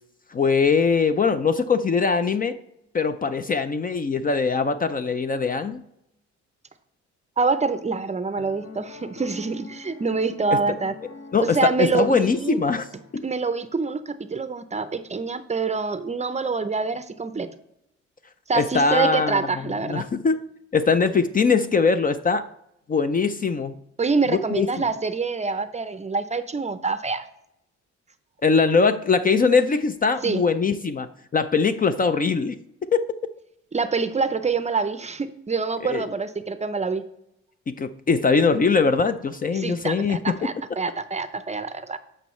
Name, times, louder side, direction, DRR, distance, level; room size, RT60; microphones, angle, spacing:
voice 1, 0.3-2.6 2.9-5.8 11.3-12.9 13.1-13.2 18.5-20.4 20.7-22.4 22.9-23.8 24.3-24.7 28.4-31.1 31.3-32.6 32.9-33.0 35.9-36.0 37.7-40.3, left 4 dB, 30° left, 10 dB, 0.4 m, -21 dB
voice 2, 7.4-10.9 11.5-12.6 13.2-17.5 18.5-20.1 24.0-27.2 30.2-30.4 33.7-37.0 39.5-42.0, right 4 dB, 25° right, 12 dB, 0.6 m, -26 dB
Piano, 8.4-13.7, left 4 dB, 65° left, 1.2 m, -44 dB
14.0 x 5.4 x 3.1 m, 0.80 s
cardioid pair, 90°, 30 cm